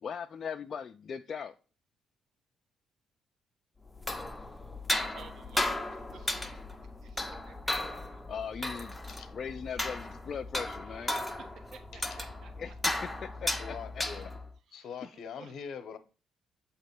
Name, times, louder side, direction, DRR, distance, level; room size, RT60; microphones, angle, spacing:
voice 1, 0.0-1.5 8.3-8.9 9.3-11.1 12.6-12.7 13.2-14.0 15.0-15.1, left 6 dB, 50° left, 0.4 m, -39 dB
sound 1, 3.9-14.5, left 1 dB, 10° left, 0.8 m, -35 dB
voice 2, 5.1-6.6 7.0-8.2 10.8-11.2 11.5-12.7 14.7-15.5, right 6 dB, 70° right, 0.8 m, -55 dB
voice 3, 13.6-14.3 14.7-16.0, left 6 dB, 70° left, 0.9 m, -43 dB
7.5 x 3.0 x 5.9 m
cardioid pair, 90°, 0 cm